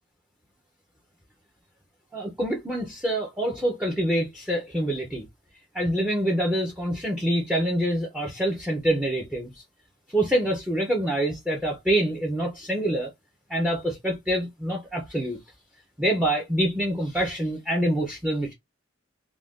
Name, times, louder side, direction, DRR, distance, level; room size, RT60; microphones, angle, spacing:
voice 1, 2.1-5.2 5.7-9.6 10.1-13.1 13.5-15.4 16.0-18.5, right 1 dB, 5° right, 0.5 m, -26 dB
2.4 x 2.2 x 3.4 m
head